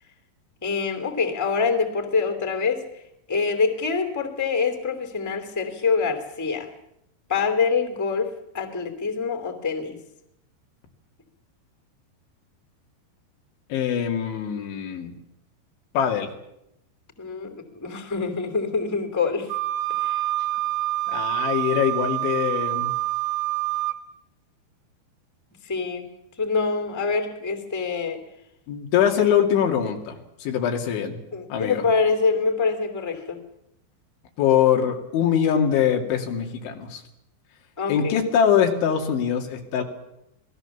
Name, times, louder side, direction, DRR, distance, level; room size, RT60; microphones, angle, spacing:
voice 1, 0.6-2.8 3.3-6.7 7.3-10.0 17.2-19.5 20.0-20.2 25.6-26.0 26.4-28.2 31.3-33.4 37.8-38.2, left 4 dB, 5° left, 6 dB, 1.5 m, -25 dB
voice 2, 13.7-15.1 15.9-16.3 21.1-22.9 28.7-31.2 31.5-31.9 34.4-37.0 37.9-39.8, left 8 dB, 90° left, 3 dB, 4.9 m, -23 dB
Wind instrument woodwind instrument, 19.5-24.0, right 17 dB, 85° right, 3.8 m, -26 dB
27.0 x 20.0 x 7.2 m, 0.82 s
omnidirectional pair, 5.2 m